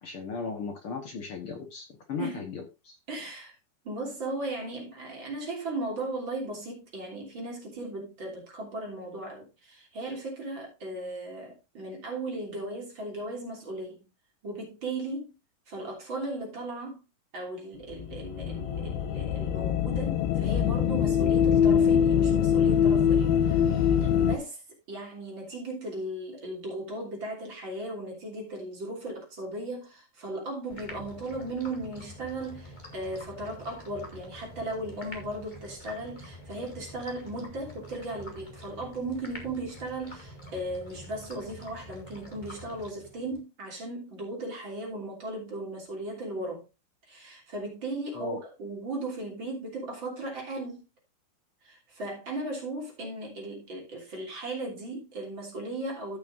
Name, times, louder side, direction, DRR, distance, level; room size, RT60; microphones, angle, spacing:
voice 1, 0.0-3.0 48.1-48.4, left 5 dB, 65° left, 1.3 m, -37 dB
voice 2, 3.1-3.5 3.8-14.0 14.4-15.3 15.7-17.0 17.3-24.6 24.9-46.6 47.1-50.8 51.6-56.2, right 2 dB, 35° right, 3.5 m, -37 dB
sound 1, 17.9-24.4, left 8 dB, 85° left, 2.7 m, -23 dB
sound 2, 30.7-43.4, left 1 dB, 15° left, 1.7 m, -46 dB
15.5 x 6.1 x 2.6 m
omnidirectional pair, 4.3 m